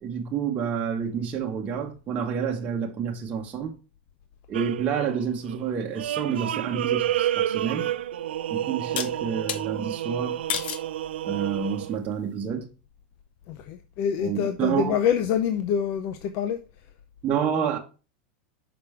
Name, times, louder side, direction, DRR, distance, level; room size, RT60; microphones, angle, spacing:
voice 1, 0.0-3.7 4.5-7.9 8.5-10.4 11.2-12.7 14.2-15.0 17.2-17.8, right 7 dB, 25° right, 1.1 m, -29 dB
sound 1, 4.5-12.0, right 12 dB, 90° right, 0.4 m, -30 dB
sound 2, 7.6-7.7 9.0-9.6 10.5-10.9 11.5-11.9, left 8 dB, 70° left, 0.9 m, -31 dB
voice 2, 13.5-16.6, left 8 dB, 45° left, 0.6 m, -26 dB
5.9 x 5.1 x 3.3 m
supercardioid pair, 135°, 6 cm